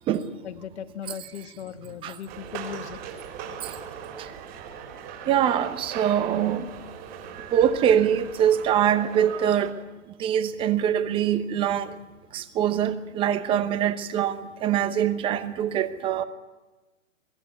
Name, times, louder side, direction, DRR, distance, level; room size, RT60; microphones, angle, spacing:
voice 1, 0.4-3.0, left 9 dB, 60° left, 1.4 m, -38 dB
sound 1, 2.3-9.7, right 7 dB, 40° right, 4.5 m, -39 dB
voice 2, 5.3-6.7 7.5-9.7 10.2-11.9 12.3-14.4 14.6-16.2, right 9 dB, 15° right, 0.9 m, -23 dB
24.0 x 14.0 x 9.5 m
hypercardioid pair, 145°, 38 cm